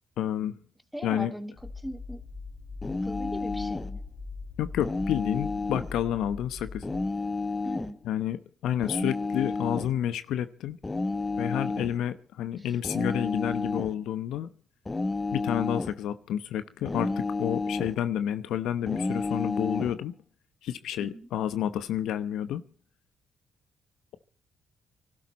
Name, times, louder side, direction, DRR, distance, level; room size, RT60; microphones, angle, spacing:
voice 1, 0.2-0.6 1.0-1.3 4.6-6.8 8.0-10.8 11.4-14.5 15.3-20.1 20.6-22.6, left 10 dB, 80° left, 0.9 m, -30 dB
voice 2, 0.9-2.2 2.9-4.0 7.6-8.0 12.6-12.7 21.0-21.3, equal, ahead, 2.2 m, -39 dB
sound 1, 1.6-7.0, left 3 dB, 55° left, 3.5 m, -41 dB
sound 2, 2.8-3.9 4.8-5.9 6.8-8.0 8.8-9.9 10.8-12.0 12.8-14.0 14.9-16.0 16.9-18.0 18.9-20.0, left 3 dB, 25° left, 1.0 m, -31 dB
24.5 x 12.5 x 4.1 m
supercardioid pair, 65°, 0 cm